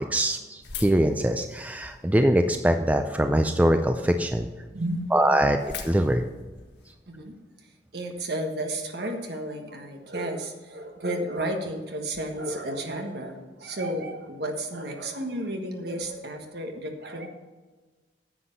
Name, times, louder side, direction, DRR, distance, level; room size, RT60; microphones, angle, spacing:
voice 1, 0.0-4.5 5.1-5.6 5.8-6.2, right 1 dB, 10° right, 6 dB, 0.4 m, -23 dB
sound 1, 0.6-2.1 2.7-3.3 3.8-3.9 4.1-4.2 4.6-4.7 4.9-6.9, left 5 dB, 65° left, 1.4 m, -41 dB
voice 2, 4.7-5.5 7.1-7.3 7.9-17.3, right 1 dB, 60° right, 4 dB, 1.4 m, -32 dB
10.0 x 7.8 x 5.4 m, 1.3 s
head